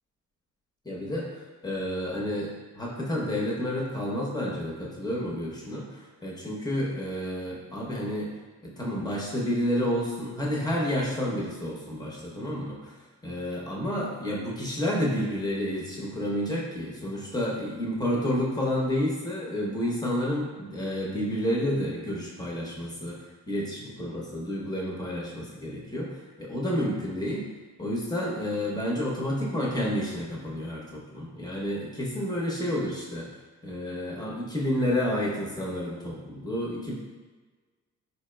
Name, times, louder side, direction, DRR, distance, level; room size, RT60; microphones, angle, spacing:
voice 1, 0.8-8.3 8.6-12.9 13.2-23.2 23.5-27.5 27.8-33.3 33.6-36.9, equal, 15° left, -4 dB, 0.8 m, -30 dB
4.4 x 2.8 x 2.2 m, 1.3 s
cardioid pair, 90°, 30 cm